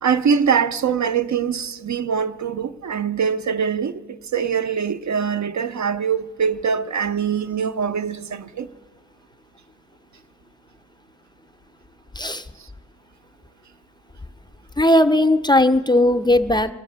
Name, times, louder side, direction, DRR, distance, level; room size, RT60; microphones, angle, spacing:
voice 1, 0.0-8.7, right 7 dB, 70° right, 0.5 m, -23 dB
voice 2, 14.8-16.7, left 1 dB, 15° left, 0.4 m, -17 dB
23.0 x 7.8 x 6.6 m
wide cardioid pair, 90°, 29 cm